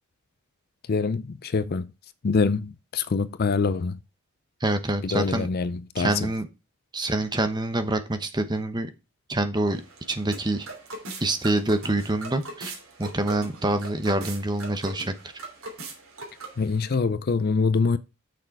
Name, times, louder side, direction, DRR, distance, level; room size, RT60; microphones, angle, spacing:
voice 1, 0.9-1.9 2.2-4.0 5.0-6.3 16.6-18.0, left 4 dB, 45° left, 0.5 m, -25 dB
voice 2, 4.6-5.5 6.0-6.5 6.9-8.9 9.3-9.8 10.1-10.7 11.2-12.7 13.0-15.1, right 2 dB, 20° right, 0.9 m, -26 dB
sound 1, 9.7-16.8, right 2 dB, 65° right, 2.8 m, -41 dB
6.6 x 6.3 x 4.6 m
head